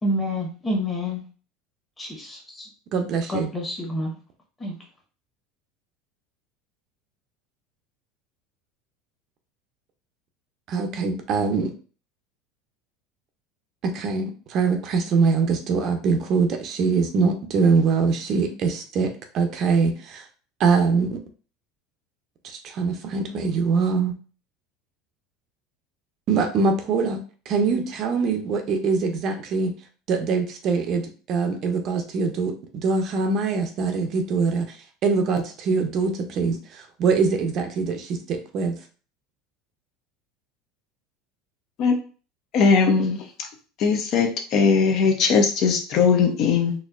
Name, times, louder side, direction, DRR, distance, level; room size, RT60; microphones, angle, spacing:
voice 1, 0.0-1.2 2.0-2.7 3.3-4.2 4.6-4.8, left 1 dB, 15° left, -1 dB, 1.1 m, -28 dB
voice 2, 2.9-3.5 10.7-11.7 13.8-20.3 20.6-21.2 22.4-24.1 26.3-27.2 27.5-29.7 30.1-38.8, right 4 dB, 40° right, 5 dB, 0.6 m, -23 dB
voice 3, 42.5-43.2 43.8-46.7, left 5 dB, 45° left, 4 dB, 0.6 m, -19 dB
4.2 x 2.5 x 2.4 m, 0.37 s
supercardioid pair, 150°, 0 cm